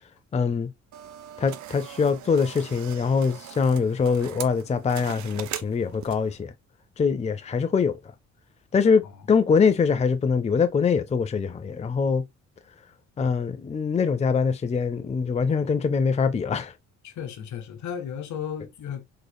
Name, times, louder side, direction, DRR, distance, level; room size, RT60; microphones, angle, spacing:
voice 1, 0.3-0.7 1.4-6.5 7.0-8.0 8.7-12.2 13.2-16.7, left 5 dB, 20° left, 0.5 m, -23 dB
sound 1, 0.9-6.4, right 11 dB, 70° right, 0.5 m, -40 dB
voice 2, 17.0-19.0, left 8 dB, 70° left, 1.0 m, -35 dB
3.8 x 3.2 x 2.2 m
cardioid pair, 90°, 30 cm